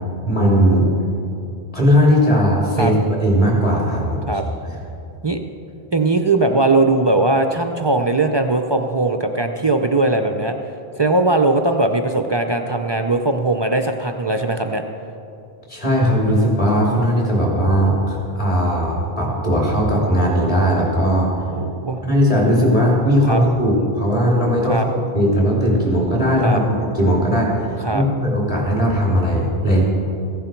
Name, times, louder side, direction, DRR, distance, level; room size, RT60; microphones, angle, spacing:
voice 1, 0.2-0.9 1.7-4.3 15.7-21.3 22.0-27.6 27.9-29.8, equal, 30° left, -3 dB, 3.1 m, -18 dB
voice 2, 5.9-10.6 11.0-14.8 21.5-22.0 23.3-23.4 24.6-24.9 26.4-26.6 27.8-28.0, right 2 dB, 40° right, 5 dB, 0.4 m, -19 dB
15.0 x 11.0 x 4.5 m, 2.7 s
omnidirectional pair, 1.1 m